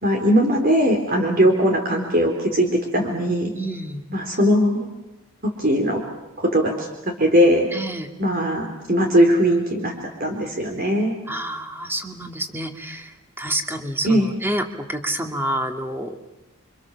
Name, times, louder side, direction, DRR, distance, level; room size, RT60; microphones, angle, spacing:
voice 1, 0.0-3.5 4.1-4.9 5.6-6.0 6.4-6.9 7.2-7.7 8.2-9.9 10.2-11.1 14.0-14.3, equal, 45° right, 3 dB, 3.9 m, -19 dB
voice 2, 3.5-4.0 7.7-8.1 11.3-16.2, right 1 dB, 10° right, 4 dB, 2.4 m, -28 dB
29.5 x 25.5 x 7.3 m, 0.99 s
head